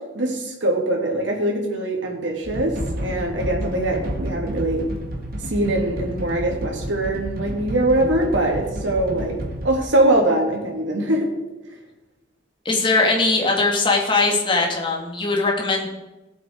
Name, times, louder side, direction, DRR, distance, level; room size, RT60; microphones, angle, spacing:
voice 1, 0.1-2.7 3.0-4.8 5.4-9.3 9.6-11.3, right 1 dB, 80° right, 0 dB, 3.1 m, -22 dB
sound 1, 2.4-9.8, right 1 dB, 50° right, 2.1 m, -30 dB
voice 2, 12.6-15.9, left 3 dB, 25° left, -1 dB, 2.4 m, -20 dB
18.0 x 8.0 x 4.8 m, 1.1 s
head